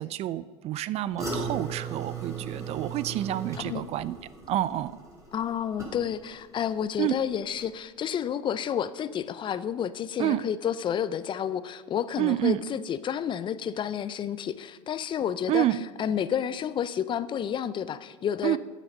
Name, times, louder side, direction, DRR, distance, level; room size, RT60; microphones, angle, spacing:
voice 1, 0.0-4.2 4.5-5.0 7.0-7.1 10.2-10.4 12.2-12.6 15.5-15.8 18.4-18.6, right 14 dB, 40° right, 17 dB, 0.4 m, -28 dB
sound 1, 1.2-6.4 6.7-7.2 7.6-7.7, right 4 dB, 20° right, 3.8 m, -37 dB
voice 2, 5.3-15.7 16.0-18.6, left 9 dB, 30° left, 15 dB, 0.5 m, -30 dB
9.6 x 9.2 x 5.4 m, 1.4 s
hypercardioid pair, 90°, 16 cm